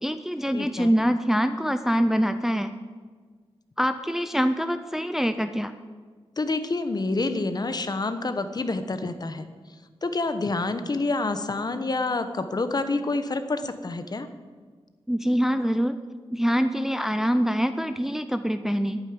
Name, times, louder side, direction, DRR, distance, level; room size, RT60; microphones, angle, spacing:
voice 1, 0.0-2.7 3.8-5.7 15.1-16.0 16.3-19.0, equal, 5° right, 9 dB, 0.5 m, -24 dB
voice 2, 0.5-1.0 6.4-9.5 10.0-14.3, left 3 dB, 40° left, 10 dB, 1.1 m, -28 dB
11.0 x 9.2 x 9.6 m, 1.5 s
wide cardioid pair, 125°, 10 cm